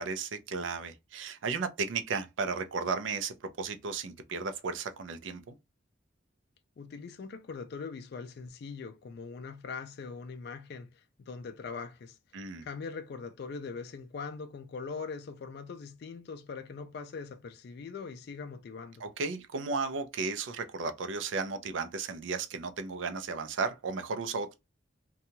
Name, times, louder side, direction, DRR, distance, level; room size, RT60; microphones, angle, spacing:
voice 1, 0.0-5.6 12.3-12.7 19.0-24.6, right 4 dB, 80° right, 0.5 m, -34 dB
voice 2, 6.8-12.2 12.6-19.0, left 5 dB, 55° left, 0.3 m, -41 dB
2.8 x 2.3 x 2.6 m
head